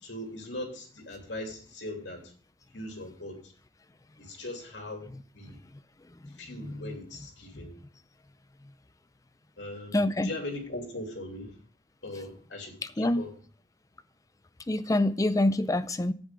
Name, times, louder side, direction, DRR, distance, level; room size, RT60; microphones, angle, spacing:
voice 1, 0.0-2.3 2.7-3.5 4.2-5.6 6.4-7.7 9.6-11.6 12.0-13.3, left 1 dB, 80° left, 3.0 m, -40 dB
voice 2, 6.6-7.0 9.9-10.3 13.0-13.2 14.7-16.1, left 1 dB, 20° left, 0.5 m, -26 dB
10.5 x 8.5 x 3.8 m
head